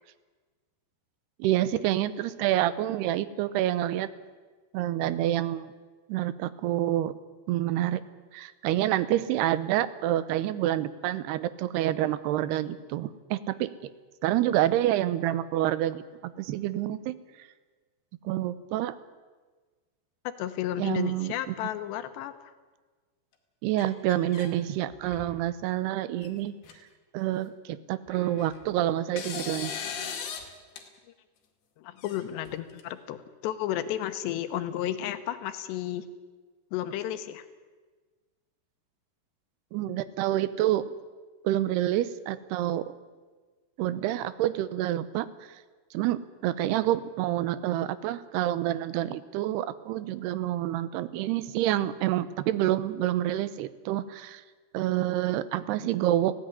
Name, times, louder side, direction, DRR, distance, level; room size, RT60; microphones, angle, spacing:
voice 1, 1.4-4.1 4.7-5.7 6.1-7.1 7.5-8.0 8.3-13.9 14.2-17.5 18.2-19.0 20.8-21.5 23.6-26.5 27.1-29.7 39.7-40.8 41.4-42.9 43.8-45.6 45.9-54.4 54.7-56.3, right 13 dB, 80° right, 15 dB, 2.8 m, -28 dB
voice 2, 20.4-22.5 31.8-36.1 36.7-37.5, left 12 dB, 85° left, 10 dB, 3.2 m, -33 dB
sound 1, 23.8-24.5 24.9-25.4 26.2-26.3 26.6-26.7 28.1-28.6 29.2-30.5 30.8-30.9 32.0-32.8, left 7 dB, 70° left, 4.0 m, -38 dB
19.0 x 16.0 x 9.7 m, 1.3 s
omnidirectional pair, 4.9 m